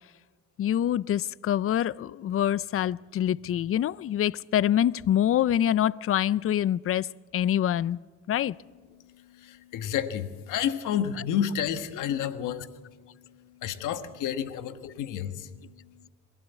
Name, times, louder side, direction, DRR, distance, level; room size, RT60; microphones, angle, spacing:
voice 1, 0.6-8.0 8.3-8.6 14.8-14.9, left 11 dB, 50° left, 0.5 m, -25 dB
voice 2, 9.4-12.7 13.6-15.5, left 9 dB, 90° left, 1.4 m, -30 dB
23.0 x 15.5 x 8.2 m
cardioid pair, 90°, 30 cm